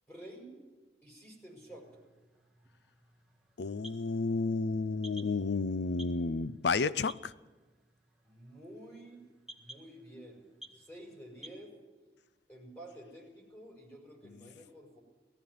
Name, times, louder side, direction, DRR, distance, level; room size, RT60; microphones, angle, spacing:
voice 1, 0.1-0.6 1.0-1.9 8.2-9.2 9.6-11.7 12.5-15.0, right 1 dB, 15° left, 5.9 m, -50 dB
sound 1, 1.7-11.6, equal, 5° right, 1.8 m, -56 dB
voice 2, 3.6-7.3, left 4 dB, 75° left, 0.6 m, -31 dB
19.0 x 15.5 x 9.5 m
head